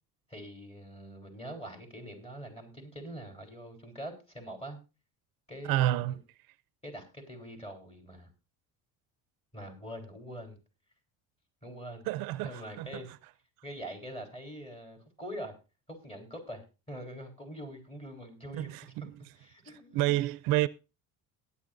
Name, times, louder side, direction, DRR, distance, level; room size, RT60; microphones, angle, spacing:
voice 1, 0.3-4.8 5.5-6.2 6.8-8.3 9.5-10.6 11.6-12.1 12.4-13.1 13.6-15.5 15.9-18.9 19.4-20.1, equal, 15° left, 3.7 m, -44 dB
voice 2, 5.7-6.2 12.1-13.0 18.6-18.8 19.9-20.7, right 16 dB, 75° right, 0.5 m, -29 dB
18.0 x 9.5 x 2.6 m
cardioid pair, 115°, 35 cm